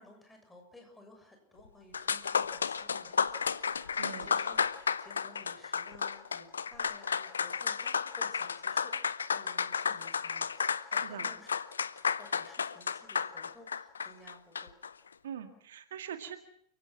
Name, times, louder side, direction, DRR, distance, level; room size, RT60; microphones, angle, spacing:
voice 1, 0.0-11.5 12.0-14.7, left 1 dB, 10° left, 3 dB, 7.4 m, -56 dB
sound 1, 1.7-1.8 1.9-14.9, left 6 dB, 70° left, 0.8 m, -32 dB
voice 2, 4.0-4.3 11.0-11.3 15.2-16.4, right 8 dB, 60° right, 8 dB, 2.0 m, -42 dB
29.5 x 17.0 x 6.1 m, 0.67 s
figure-of-eight pair, 90°, 0 cm